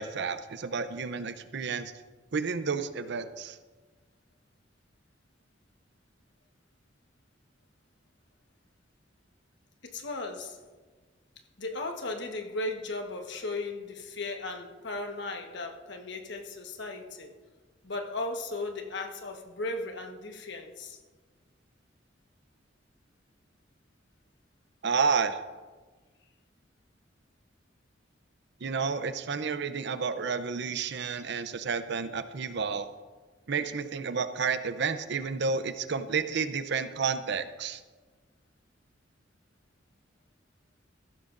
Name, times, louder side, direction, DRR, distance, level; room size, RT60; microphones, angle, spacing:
voice 1, 0.0-1.9 2.3-3.6 24.8-25.4 28.6-32.9 33.5-37.8, right 5 dB, 65° right, 11 dB, 0.6 m, -31 dB
voice 2, 9.8-10.6 11.6-17.3 17.8-21.0, left 2 dB, 65° left, 4 dB, 1.3 m, -36 dB
15.0 x 12.5 x 2.6 m, 1.4 s
head